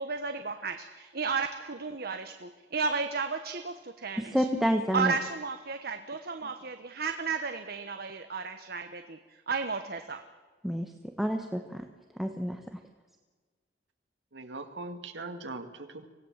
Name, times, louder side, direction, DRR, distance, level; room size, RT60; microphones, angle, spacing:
voice 1, 0.0-4.4 4.9-9.2 9.5-10.2, right 4 dB, 60° right, 7 dB, 1.2 m, -33 dB
voice 2, 4.2-5.1 10.6-10.9 11.2-11.8 12.2-12.8, equal, ahead, 4 dB, 1.2 m, -29 dB
voice 3, 14.3-16.1, right 2 dB, 85° right, 6 dB, 2.1 m, -40 dB
25.0 x 18.0 x 7.4 m, 1.4 s
head